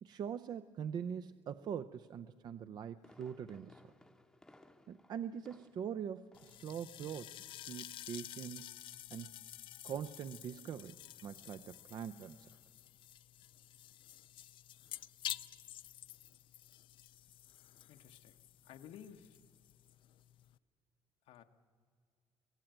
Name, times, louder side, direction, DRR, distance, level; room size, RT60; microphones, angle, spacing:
voice 1, 0.0-3.8 4.9-7.4 7.7-8.8 9.1-9.3 9.8-12.5, right 8 dB, 45° right, 11 dB, 0.5 m, -43 dB
Fireworks, 2.6-6.0 6.3-6.7 7.0-7.1, left 1 dB, 5° left, 0.8 m, -62 dB
sound 1, 6.3-20.6, left 12 dB, 60° left, 0.5 m, -50 dB
voice 2, 17.9-19.4 21.2-21.4, left 9 dB, 85° left, 5 dB, 1.3 m, -55 dB
24.0 x 16.5 x 9.1 m, 2.1 s
cardioid pair, 175°, 10 cm